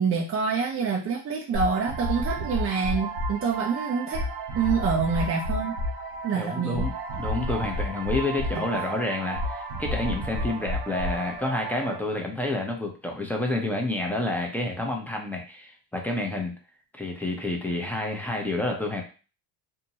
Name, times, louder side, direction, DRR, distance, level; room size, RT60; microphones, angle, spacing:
voice 1, 0.0-4.2 4.5-5.8 6.2-6.9 8.6-8.7, right 5 dB, 30° right, 0 dB, 0.5 m, -26 dB
sound 1, 1.5-12.0, equal, 75° right, 0.9 m, -31 dB
voice 2, 6.3-16.5 16.9-19.0, left 2 dB, 5° left, 1 dB, 0.7 m, -29 dB
2.7 x 2.2 x 2.8 m, 0.35 s
supercardioid pair, 75°, 49 cm